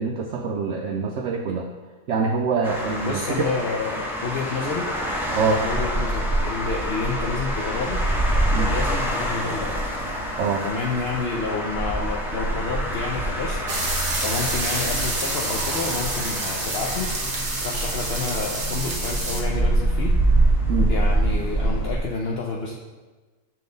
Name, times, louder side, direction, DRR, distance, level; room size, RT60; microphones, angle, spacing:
voice 1, 0.0-1.7 2.1-3.5 5.3-5.6 8.5-8.7 10.4-10.6 20.7-20.9, right 5 dB, 75° right, 2 dB, 0.7 m, -25 dB
sound 1, 2.6-22.0, right 1 dB, 5° right, 0.3 m, -25 dB
voice 2, 3.0-4.9 5.5-8.0 8.7-9.8 10.6-13.6 14.2-17.3 17.6-20.1 20.9-22.7, left 4 dB, 65° left, -3 dB, 0.6 m, -29 dB
sound 2, 8.9-21.9, left 1 dB, 35° left, 1.7 m, -41 dB
sound 3, 13.7-19.4, right 2 dB, 40° right, 1.0 m, -28 dB
7.6 x 3.7 x 3.9 m, 1.3 s
omnidirectional pair, 1.7 m